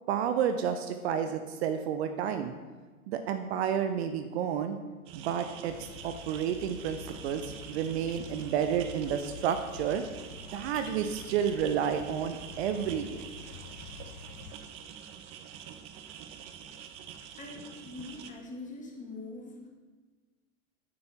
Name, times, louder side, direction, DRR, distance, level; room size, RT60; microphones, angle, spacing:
voice 1, 0.1-2.5 3.1-4.8 5.1-10.0 10.5-13.2, right 8 dB, 50° right, 8 dB, 0.9 m, -31 dB
sound 1, 5.1-18.3, right 8 dB, 15° right, 0.3 m, -46 dB
sound 2, 5.7-14.5, left 8 dB, 65° left, 0.9 m, -48 dB
voice 2, 17.4-19.7, left 2 dB, 15° left, 1 dB, 2.1 m, -43 dB
9.0 x 8.6 x 5.9 m, 1.4 s
figure-of-eight pair, 100°, 43 cm